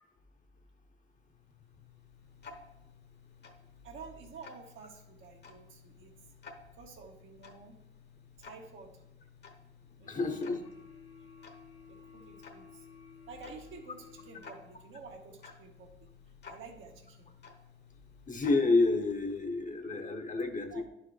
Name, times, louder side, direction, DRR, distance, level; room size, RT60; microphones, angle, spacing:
Tick-tock, 1.1-19.5, left 5 dB, 55° left, 1.2 m, -55 dB
voice 1, 3.8-6.1 6.7-7.8 8.4-9.0 10.0-10.6 11.9-12.9 13.3-16.1 16.5-17.3 20.7-20.8, right 4 dB, 80° right, 1 dB, 1.4 m, -50 dB
sound 1, 10.0-14.9, left 6 dB, 90° left, 1.1 m, -54 dB
voice 2, 10.1-10.6 18.3-20.9, left 3 dB, 40° left, 5 dB, 0.9 m, -29 dB
10.5 x 4.6 x 3.2 m, 0.87 s
cardioid pair, 90°, 20 cm